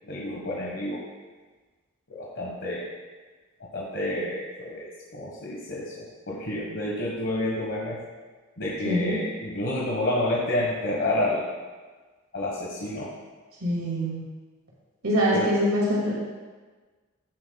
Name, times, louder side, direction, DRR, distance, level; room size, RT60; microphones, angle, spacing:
voice 1, 0.0-1.1 2.1-2.8 3.7-8.0 8.6-11.5 12.3-13.1 15.3-15.5, left 1 dB, 60° left, -4 dB, 1.5 m, -29 dB
voice 2, 8.9-9.2 13.6-14.2 15.0-16.1, equal, 85° right, -5 dB, 2.4 m, -24 dB
16.0 x 7.9 x 2.3 m, 1.3 s
head